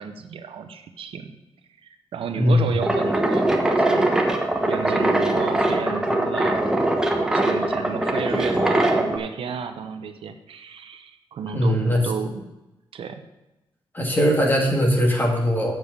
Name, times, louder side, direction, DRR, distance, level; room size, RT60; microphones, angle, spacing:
voice 1, 0.0-1.3 1.8-4.1 4.7-6.7 7.1-12.4 12.9-13.2, right 6 dB, 75° right, 7 dB, 0.9 m, -32 dB
voice 2, 2.4-2.7 11.5-12.0 13.9-15.7, equal, 20° left, 0 dB, 2.2 m, -20 dB
sound 1, 2.8-9.2, right 1 dB, 5° right, 1.1 m, -21 dB
7.6 x 7.2 x 6.7 m, 0.98 s
wide cardioid pair, 120°, 9 cm